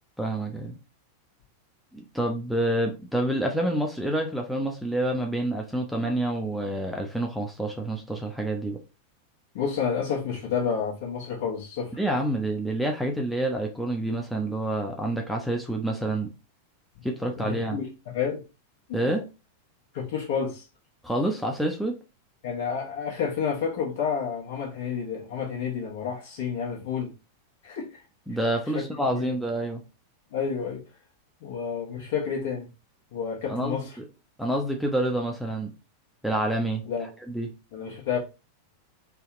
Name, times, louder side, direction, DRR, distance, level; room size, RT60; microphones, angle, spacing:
voice 1, 0.2-0.7 1.9-8.8 12.0-16.3 17.0-17.8 18.9-19.3 21.0-21.9 28.3-29.8 33.5-34.0 34.4-35.7 36.2-36.8 37.3-37.5, right 1 dB, ahead, 0.5 m, -28 dB
voice 2, 9.5-11.9 16.9-17.0 17.4-18.4 19.0-19.1 19.9-20.6 22.4-27.1 27.6-28.0 28.7-29.3 30.3-30.8 31.4-32.7 33.1-33.9 36.8-37.1 37.7-38.2, left 7 dB, 55° left, 1.1 m, -30 dB
3.4 x 2.3 x 2.9 m
figure-of-eight pair, 90°, 0 cm